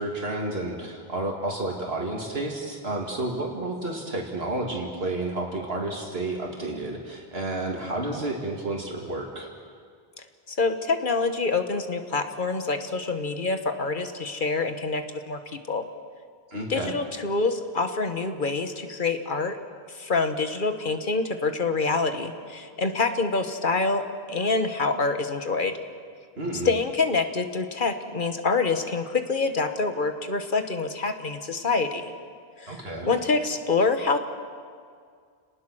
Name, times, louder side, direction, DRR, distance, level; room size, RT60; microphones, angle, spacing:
voice 1, 0.0-9.5 16.5-16.9 26.4-26.7 32.7-33.1, right 2 dB, 75° right, 0 dB, 2.6 m, -31 dB
voice 2, 10.5-15.4 15.7-15.8 16.7-19.6 19.9-24.0 24.3-25.7 26.6-32.1 32.6-34.2, left 4 dB, 55° left, 8 dB, 1.6 m, -26 dB
29.5 x 19.0 x 6.3 m, 2.1 s
omnidirectional pair, 1.0 m